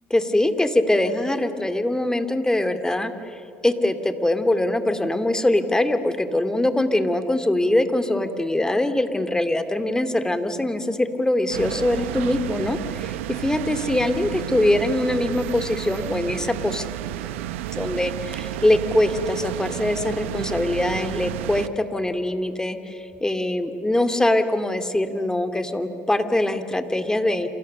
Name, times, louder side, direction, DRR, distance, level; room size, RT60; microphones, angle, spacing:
voice 1, 0.1-16.9 17.7-27.5, left 1 dB, 10° left, 8 dB, 2.4 m, -23 dB
sound 1, 11.5-21.7, right 13 dB, 80° right, 0.9 m, -31 dB
28.5 x 27.5 x 6.7 m, 2.8 s
hypercardioid pair, 65°, 7 cm